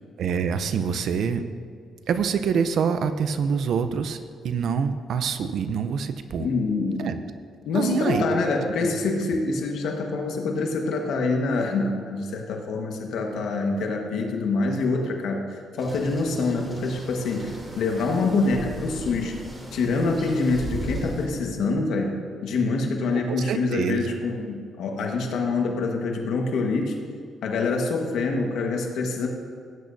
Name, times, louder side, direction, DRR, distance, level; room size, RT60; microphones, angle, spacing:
voice 1, 0.2-1.4 2.1-4.2 4.4-6.5 7.0-7.2 7.7-8.2 8.8-8.9 23.3-24.0, right 6 dB, 70° right, 10 dB, 0.7 m, -25 dB
voice 2, 6.4-7.1 7.6-19.4 19.7-27.0 27.4-29.3, left 3 dB, 75° left, 2 dB, 1.5 m, -26 dB
sound 1, 15.8-21.3, right 1 dB, 15° right, 3.0 m, -37 dB
17.0 x 8.5 x 2.7 m, 2.2 s
cardioid pair, 90°, 0 cm